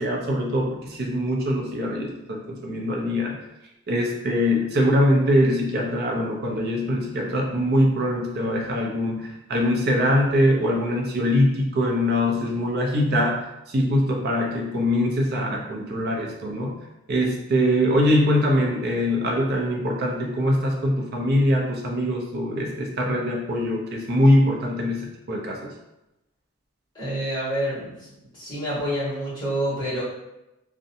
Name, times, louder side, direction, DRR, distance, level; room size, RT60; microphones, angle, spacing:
voice 1, 0.0-3.3 3.9-13.4 13.7-16.7 17.1-25.0 25.3-25.7, equal, 50° right, 0 dB, 0.5 m, -22 dB
voice 2, 12.3-12.6 26.9-27.9 28.3-30.0, equal, 20° left, -9 dB, 1.3 m, -28 dB
2.6 x 2.1 x 2.7 m, 0.92 s
head